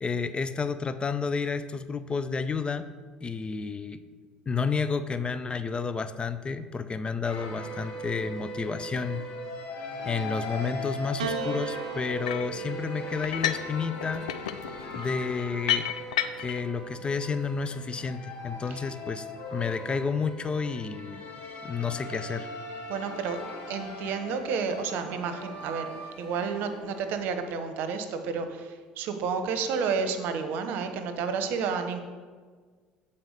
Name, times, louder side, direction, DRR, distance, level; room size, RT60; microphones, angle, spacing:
voice 1, 0.0-2.9 3.2-4.0 4.5-9.2 10.0-14.3 14.9-15.9 16.4-19.3 19.5-21.2 21.6-22.5, left 5 dB, 30° left, 12 dB, 0.5 m, -31 dB
sound 1, 7.2-27.1, left 1 dB, 65° left, 1.8 m, -39 dB
Piano, 11.2-15.7 16.7-17.5, right 10 dB, 90° right, 0.4 m, -40 dB
sound 2, 12.2-12.6 13.2-13.7 14.0-16.6, left 11 dB, 90° left, 0.3 m, -31 dB
voice 2, 22.9-23.4 23.7-25.9 26.2-28.7 29.0-32.0, right 5 dB, 65° right, 8 dB, 0.8 m, -30 dB
8.0 x 4.2 x 6.4 m, 1.5 s
hypercardioid pair, 70°, 4 cm